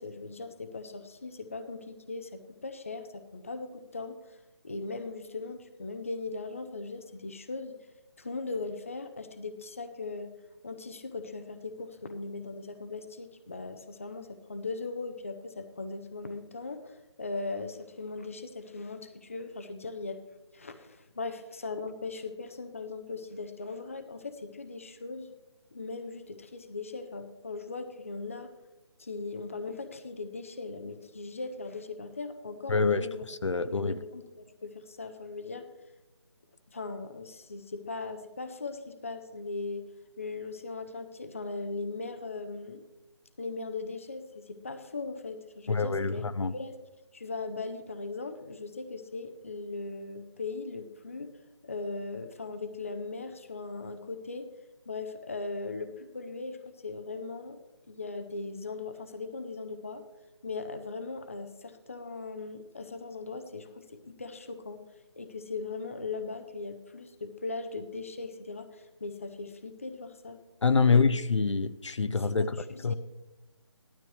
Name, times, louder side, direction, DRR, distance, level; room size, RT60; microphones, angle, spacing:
voice 1, 0.0-4.4 4.6-7.7 8.2-10.3 10.6-20.2 20.5-25.3 25.7-28.5 29.0-33.2 33.6-35.7 36.7-39.8 40.2-42.8 43.4-46.8 47.1-51.3 51.6-54.5 54.9-57.6 57.9-60.0 60.4-64.8 65.2-70.4 70.8-71.1 72.2-73.0, left 3 dB, 30° left, 0.6 m, -39 dB
voice 2, 32.7-33.0 33.4-34.0 45.7-46.5 70.6-72.5 72.8-73.0, left 4 dB, 75° left, 0.7 m, -25 dB
15.0 x 12.0 x 3.2 m
figure-of-eight pair, 175°, 15 cm